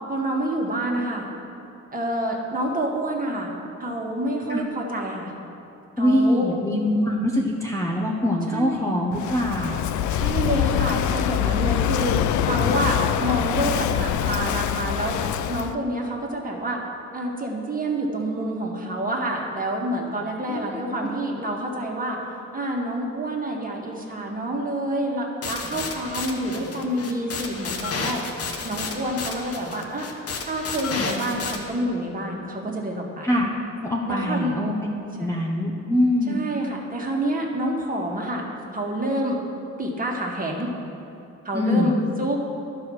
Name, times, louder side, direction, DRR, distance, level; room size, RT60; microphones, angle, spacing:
voice 1, 0.1-1.3 1.9-3.5 3.8-5.3 6.0-6.6 8.5-8.9 9.7-9.8 10.1-15.2 15.5-16.8 17.1-22.2 22.5-28.2 28.6-30.1 30.4-33.3 34.1-34.6 35.2-35.5 36.3-38.5 38.7-39.4 39.8-40.7 41.4-42.4, right 1 dB, 30° right, -1 dB, 1.6 m, -28 dB
voice 2, 6.0-9.8 20.5-20.8 33.2-33.5 33.8-34.9 35.2-36.4 41.5-41.9, left 1 dB, 10° left, -2 dB, 0.9 m, -23 dB
Walk footsteps / Wind / Waves surf, 9.1-15.7, left 10 dB, 70° left, 0.5 m, -24 dB
sound 1, 25.4-31.6, left 4 dB, 50° left, 1.1 m, -32 dB
11.5 x 4.8 x 6.3 m, 2.7 s
cardioid pair, 90°, 30 cm